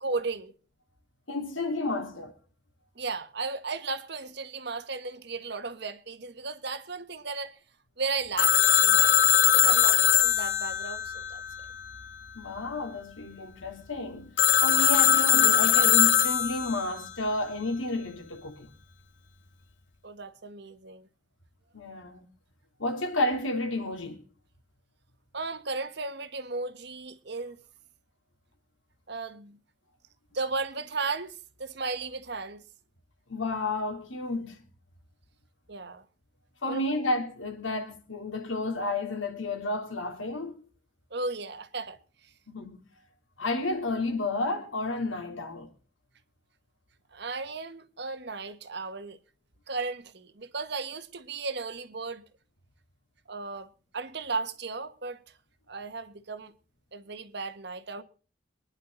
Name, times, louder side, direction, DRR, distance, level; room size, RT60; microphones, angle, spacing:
voice 1, 0.0-0.5 2.9-7.6 8.0-9.2 9.4-11.4 20.0-21.1 25.3-27.6 29.1-29.6 30.3-32.6 35.7-36.0 36.7-36.9 41.1-42.3 47.1-49.2 49.7-52.2 53.3-53.7 53.9-55.2 55.7-56.5 56.9-58.0, right 4 dB, 60° right, 1.4 m, -35 dB
voice 2, 1.3-2.3 12.4-18.7 21.7-22.2 22.8-24.2 33.3-34.6 36.6-40.6 42.5-42.8 43.4-45.7, left 2 dB, 90° left, 3.5 m, -31 dB
Telephone, 8.4-12.0 14.4-16.9, left 10 dB, 65° left, 1.0 m, -21 dB
24.0 x 10.5 x 4.0 m
head